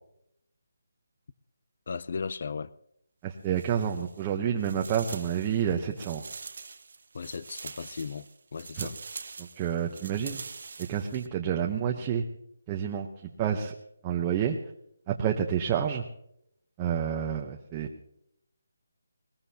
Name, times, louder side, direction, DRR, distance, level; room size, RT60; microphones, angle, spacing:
voice 1, 1.9-2.7 7.1-9.0, left 5 dB, 50° left, 0.5 m, -36 dB
voice 2, 3.2-6.2 8.8-8.9 9.4-10.4 10.8-12.2 12.7-13.7 14.0-14.6 15.1-16.0 16.8-17.9, right 9 dB, 20° right, 0.8 m, -29 dB
sound 1, 3.4-4.3 4.6-11.3, right 4 dB, 60° right, 1.1 m, -44 dB
21.5 x 19.0 x 2.8 m
hypercardioid pair, 170°, 0 cm